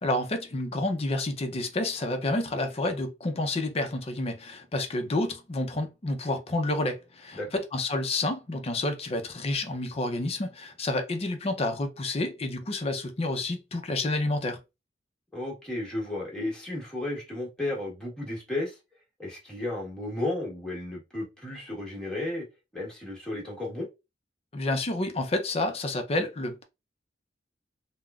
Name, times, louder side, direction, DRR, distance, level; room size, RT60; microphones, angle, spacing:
voice 1, 0.0-14.6 24.5-26.6, left 2 dB, 35° left, 0.5 m, -29 dB
voice 2, 15.3-18.8 19.2-22.5 22.7-23.9, left 2 dB, 5° left, 1.3 m, -33 dB
3.5 x 2.1 x 2.3 m
head